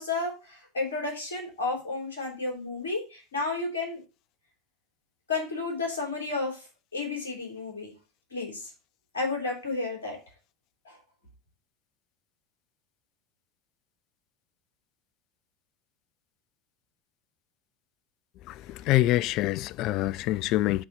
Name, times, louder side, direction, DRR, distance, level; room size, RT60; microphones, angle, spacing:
voice 1, 0.0-4.0 5.3-6.6 6.9-7.9 8.3-8.7 9.1-10.2 10.8-11.0, left 3 dB, 70° left, 3.3 m, -32 dB
voice 2, 18.5-20.8, left 16 dB, 45° left, 0.3 m, -26 dB
7.6 x 4.0 x 6.7 m
figure-of-eight pair, 75°, 0 cm